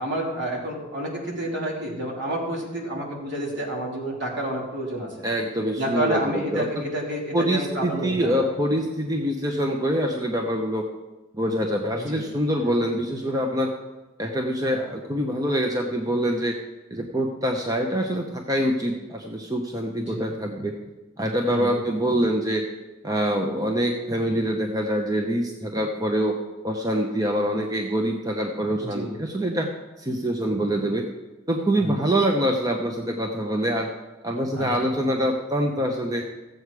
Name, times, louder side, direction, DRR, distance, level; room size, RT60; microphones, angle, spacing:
voice 1, 0.0-5.1 5.8-8.3 12.1-12.2 12.6-12.7 19.9-20.2 21.5-21.8 28.9-29.1 31.8-32.0 34.5-34.9, right 1 dB, 60° right, -3 dB, 3.3 m, -29 dB
voice 2, 5.2-6.8 7.3-10.9 11.3-13.7 14.2-16.6 16.9-20.8 21.2-22.7 23.0-26.4 26.6-29.7 30.0-31.0 31.5-33.9 34.2-36.2, equal, 20° right, 2 dB, 0.8 m, -25 dB
15.0 x 7.9 x 4.8 m, 1.1 s
head